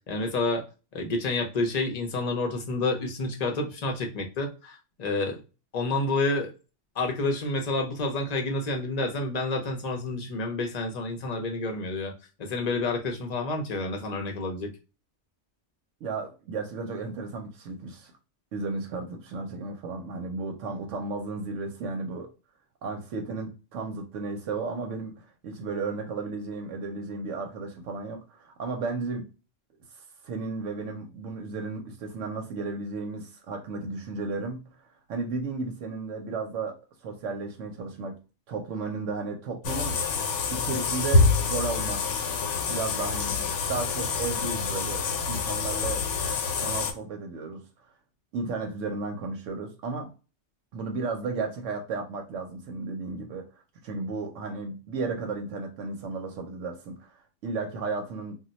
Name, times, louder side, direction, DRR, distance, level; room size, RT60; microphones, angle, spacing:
voice 1, 0.1-0.6 0.9-5.4 5.7-6.5 7.0-12.1 12.4-14.7, left 2 dB, 45° left, 0.6 m, -29 dB
voice 2, 16.0-18.1 18.5-22.3 22.8-29.3 29.9-34.7 35.1-36.8 37.0-38.2 38.5-40.0 40.5-42.2 42.7-46.1 46.6-47.6 48.3-50.1 50.7-53.5 53.8-58.3, right 4 dB, 85° right, 0.9 m, -34 dB
sound 1, 39.6-46.9, left 4 dB, 80° left, 0.9 m, -26 dB
2.3 x 2.1 x 3.8 m
omnidirectional pair, 1.2 m